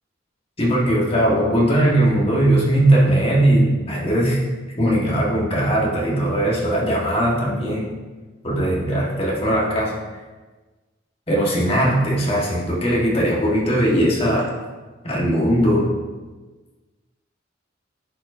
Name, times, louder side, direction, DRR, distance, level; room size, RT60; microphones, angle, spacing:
voice 1, 0.6-4.4 4.8-7.9 8.4-9.9 11.3-14.5 15.0-15.9, right 1 dB, 30° left, -4 dB, 1.5 m, -19 dB
10.5 x 4.6 x 2.7 m, 1.3 s
head